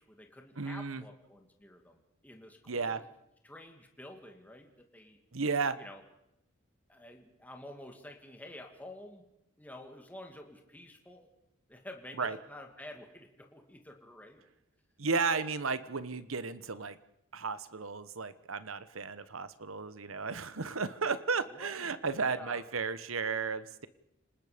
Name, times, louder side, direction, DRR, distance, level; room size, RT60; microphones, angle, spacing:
voice 1, 0.0-3.0 3.4-5.2 5.8-6.0 6.9-9.2 9.6-11.3 11.7-14.4 21.5-21.9 22.2-22.6, left 1 dB, 10° left, 3 dB, 2.5 m, -50 dB
voice 2, 0.6-1.0 2.7-3.0 5.3-5.8 12.2-12.4 15.0-17.0 17.3-23.9, right 4 dB, 80° right, 14 dB, 1.2 m, -34 dB
30.0 x 19.5 x 5.2 m, 0.81 s
head